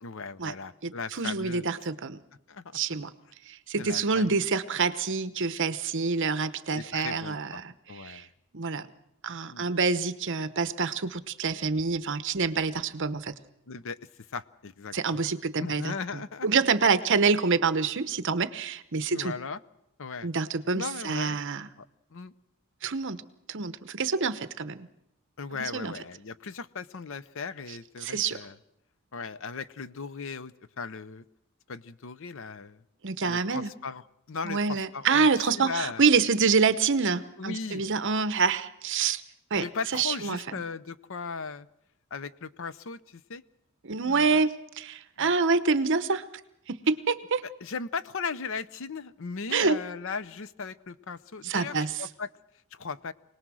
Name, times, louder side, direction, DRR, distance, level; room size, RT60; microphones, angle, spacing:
voice 1, 0.0-1.7 2.5-2.8 3.8-4.5 6.7-7.6 7.9-8.3 9.5-9.7 13.7-15.2 15.6-16.5 19.1-19.6 20.0-20.3 20.7-21.4 21.8-21.9 22.1-22.3 25.4-28.6 29.1-31.2 31.7-32.8 33.3-34.0 34.3-36.0 37.4-37.8 39.5-41.7 42.1-43.4 44.0-44.4 45.2-45.3 47.6-52.3 52.7-53.1, left 5 dB, 60° left, 16 dB, 0.7 m, -37 dB
voice 2, 0.8-2.2 2.7-3.1 3.5-7.7 8.0-8.3 8.5-8.9 9.2-13.3 14.9-15.9 16.4-19.3 20.2-21.7 22.8-23.2 23.5-24.9 25.6-25.9 28.0-28.4 33.0-33.7 34.4-39.2 39.5-39.6 39.9-40.4 43.8-46.2 46.7-47.4 49.5-49.8 51.4-51.9, right 4 dB, 55° right, 12 dB, 0.9 m, -26 dB
25.0 x 19.0 x 6.2 m, 0.83 s
head